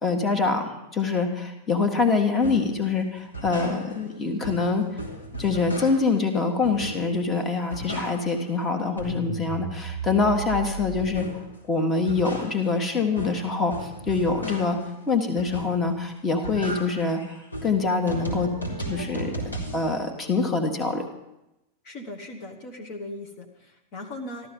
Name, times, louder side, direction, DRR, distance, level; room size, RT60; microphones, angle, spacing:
voice 1, 0.0-4.8 5.4-11.3 11.7-14.8 15.1-17.2 17.6-18.5 18.9-19.3 19.7-21.0, left 4 dB, 20° left, 5 dB, 1.9 m, -25 dB
sound 1, 2.4-2.7 3.2-4.2 4.4-6.2 6.6-7.3 7.5-8.5 8.8-11.5 11.9-14.9 15.4-16.0 16.3-19.9, right 1 dB, 80° left, 3.8 m, -35 dB
voice 2, 21.8-24.5, left 1 dB, 40° left, 2 dB, 1.6 m, -38 dB
14.0 x 13.5 x 5.5 m, 0.91 s
figure-of-eight pair, 90°, 0 cm